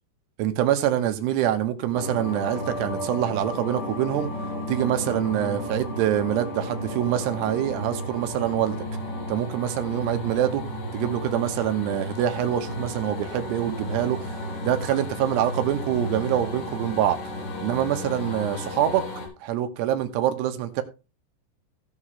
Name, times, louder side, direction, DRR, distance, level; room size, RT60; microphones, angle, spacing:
voice 1, 0.4-4.3 4.7-8.8 9.3-10.6 10.9-14.3 14.6-17.2 17.6-19.1 19.4-20.8, right 11 dB, 85° right, 3.2 m, -25 dB
sound 1, 1.9-19.3, equal, 90° left, 4.6 m, -33 dB
17.5 x 5.8 x 3.2 m
omnidirectional pair, 4.8 m